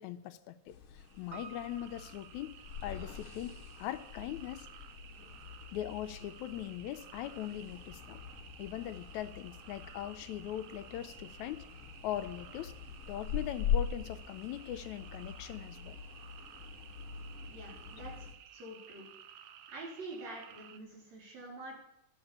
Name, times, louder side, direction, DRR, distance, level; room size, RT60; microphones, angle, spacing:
voice 1, 0.0-2.5 2.8-4.7 5.7-8.2 8.6-11.6 12.0-12.7 13.1-16.0, left 12 dB, 80° left, 10 dB, 1.9 m, -41 dB
sound 1, 0.7-18.3, left 7 dB, 60° left, 1.5 m, -42 dB
sound 2, 1.0-20.8, right 10 dB, 75° right, 1.5 m, -55 dB
Piano, 1.3-5.8 6.1-6.2, right 5 dB, 30° right, 1.4 m, -55 dB
voice 2, 17.5-18.3 18.5-19.1 19.7-21.8, right 2 dB, 60° right, -3 dB, 4.9 m, -46 dB
11.5 x 7.3 x 8.6 m, 0.79 s
omnidirectional pair, 3.6 m